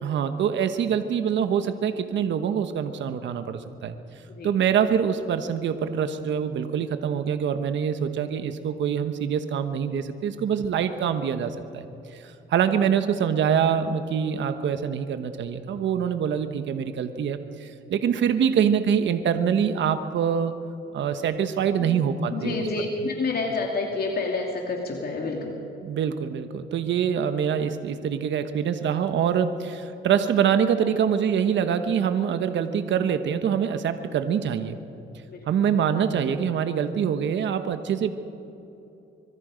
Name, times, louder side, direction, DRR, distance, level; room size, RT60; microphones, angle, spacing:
voice 1, 0.0-3.9 4.4-11.9 12.1-20.5 20.9-22.6 25.8-34.8 35.5-38.1, right 8 dB, 65° right, 9 dB, 1.2 m, -25 dB
voice 2, 22.3-25.6 35.3-35.4 35.7-35.8, left 3 dB, 50° left, 0 dB, 2.7 m, -29 dB
25.0 x 22.5 x 5.2 m, 2.8 s
cardioid pair, 90°, 20 cm